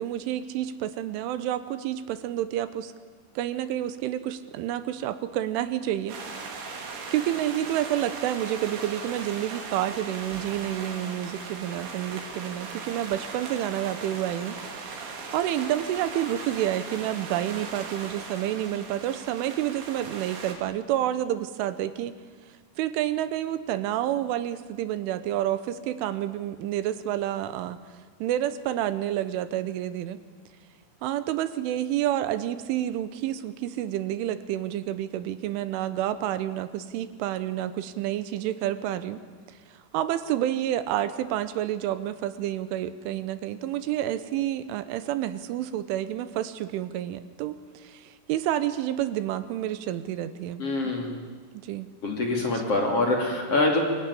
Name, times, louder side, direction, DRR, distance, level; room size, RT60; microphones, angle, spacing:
voice 1, 0.0-2.9 3.4-6.2 6.7-14.6 15.0-22.2 22.8-27.8 28.2-30.2 31.0-39.2 39.5-50.6 51.6-51.9, right 12 dB, 80° right, 12 dB, 3.4 m, -29 dB
sound 1, 6.1-20.5, right 4 dB, 65° right, 5.2 m, -38 dB
voice 2, 50.6-51.1 52.0-53.8, left 2 dB, 35° left, 0 dB, 3.3 m, -25 dB
25.0 x 23.0 x 10.0 m, 1.5 s
omnidirectional pair, 5.7 m